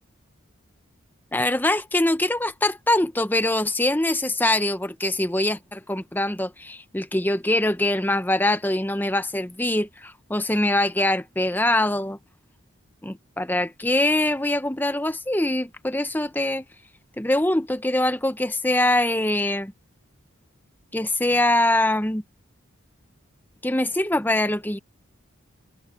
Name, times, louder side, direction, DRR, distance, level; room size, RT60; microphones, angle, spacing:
voice 1, 1.3-12.2 13.0-16.6 17.2-19.7 20.9-22.2 23.6-24.8, left 1 dB, 10° left, 0.8 m, -23 dB
head